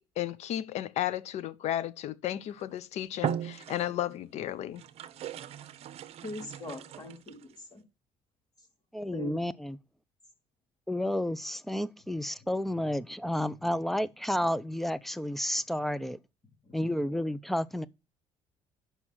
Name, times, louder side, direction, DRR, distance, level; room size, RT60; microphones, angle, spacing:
voice 1, 0.0-4.8, left 12 dB, 65° left, 0.8 m, -34 dB
sound 1, 2.5-2.7 3.1-4.2 4.7-7.5, right 10 dB, 60° right, 0.8 m, -38 dB
voice 2, 6.2-7.8 9.1-9.3 16.6-16.9, left 1 dB, 35° left, 3.5 m, -41 dB
voice 3, 8.9-9.8 10.9-16.2 16.7-17.9, left 1 dB, ahead, 0.6 m, -31 dB
7.1 x 5.7 x 6.2 m
cardioid pair, 95°, 12 cm